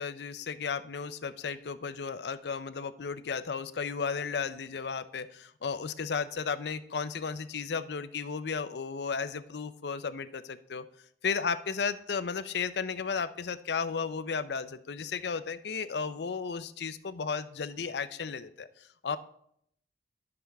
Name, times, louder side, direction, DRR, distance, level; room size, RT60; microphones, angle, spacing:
voice 1, 0.0-10.9 11.2-19.2, left 5 dB, 75° left, 13 dB, 0.5 m, -34 dB
11.0 x 6.7 x 3.4 m, 0.70 s
head